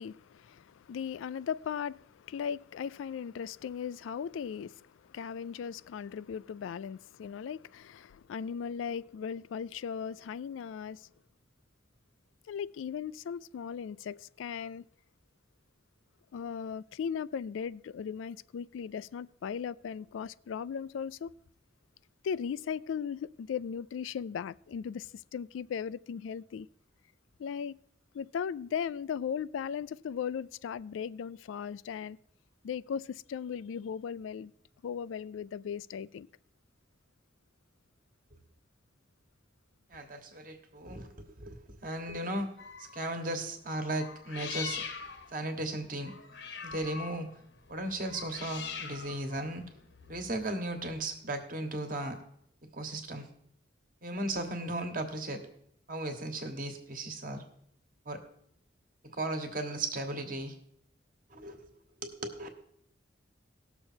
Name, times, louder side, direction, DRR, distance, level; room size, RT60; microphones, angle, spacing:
voice 1, 0.0-11.1 12.5-14.8 16.3-21.3 22.2-26.7 27.4-27.8 28.1-32.2 32.6-34.5 34.8-36.3, left 7 dB, 85° left, 0.3 m, -37 dB
voice 2, 39.9-42.5 42.8-44.8 45.3-46.1 46.6-47.3 47.7-49.6 50.1-52.2 52.7-53.3 54.0-55.4 55.9-57.4 58.0-58.2 59.1-60.5 61.3-61.7 62.0-62.5, right 1 dB, 45° right, 1.4 m, -36 dB
sound 1, 42.6-43.1 43.9-51.0, left 6 dB, 70° left, 1.1 m, -43 dB
17.5 x 6.7 x 4.4 m
head